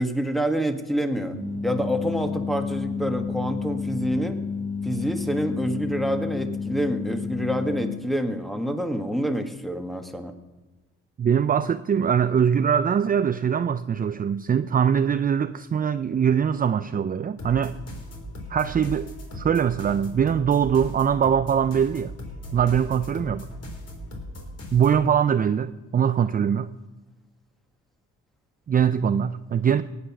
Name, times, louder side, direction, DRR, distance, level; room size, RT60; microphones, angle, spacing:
voice 1, 0.0-1.4 1.6-4.4 4.8-10.3, equal, ahead, 1.5 m, -27 dB
sound 1, 1.3-7.9, left 5 dB, 70° left, 2.1 m, -30 dB
voice 2, 11.2-17.8 18.5-22.1 22.5-23.5 24.7-26.7 28.7-29.8, right 8 dB, 30° right, 0.4 m, -22 dB
sound 2, 17.4-25.0, equal, 55° left, 3.4 m, -38 dB
17.5 x 8.6 x 6.0 m
cardioid pair, 90°, 30 cm